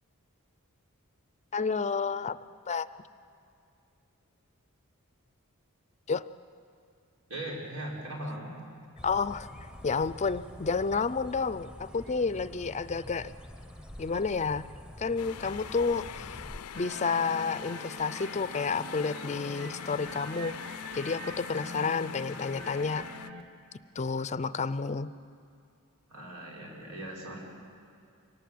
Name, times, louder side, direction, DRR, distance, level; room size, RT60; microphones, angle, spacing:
voice 1, 1.5-2.4 2.7-2.9 6.1-6.2 9.0-9.5 9.8-13.3 14.0-14.7 15.0-16.3 16.7-20.6 20.9-23.1 24.0-25.1, left 5 dB, 30° left, 15 dB, 0.5 m, -30 dB
voice 2, 7.3-8.5 15.4-15.5 26.1-27.4, right 1 dB, 90° right, -2 dB, 5.7 m, -39 dB
sound 1, 9.0-16.6, left 1 dB, 5° right, 0.8 m, -47 dB
sound 2, 15.2-23.3, left 9 dB, 90° left, 0.5 m, -43 dB
sound 3, 16.7-23.4, equal, 45° right, 2.2 m, -43 dB
25.5 x 19.0 x 7.7 m, 2.5 s
head